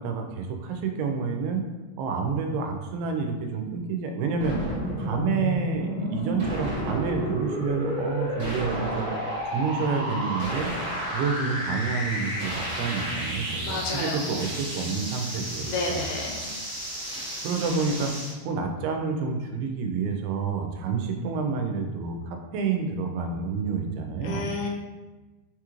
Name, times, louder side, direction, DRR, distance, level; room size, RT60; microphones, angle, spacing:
voice 1, 0.0-1.7 2.0-4.6 5.0-9.1 9.5-10.7 11.1-16.0 17.4-18.1 18.4-24.4, right 5 dB, 85° right, 4 dB, 2.5 m, -29 dB
sound 1, 4.4-18.3, equal, 50° right, 1.2 m, -31 dB
voice 2, 13.5-14.3 15.3-16.5 24.2-24.7, left 3 dB, 80° left, 0 dB, 2.4 m, -32 dB
6.2 x 2.4 x 3.0 m, 1.2 s
omnidirectional pair, 4.3 m